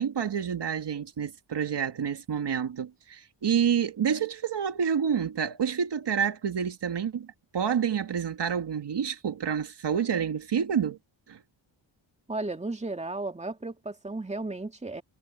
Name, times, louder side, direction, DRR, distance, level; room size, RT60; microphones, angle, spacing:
voice 1, 0.0-7.3 7.5-11.0 11.3-11.4, right 7 dB, 60° right, 2.0 m, -28 dB
voice 2, 12.3-15.0, right 2 dB, 15° right, 2.3 m, -34 dB
cardioid pair, 75°, 45 cm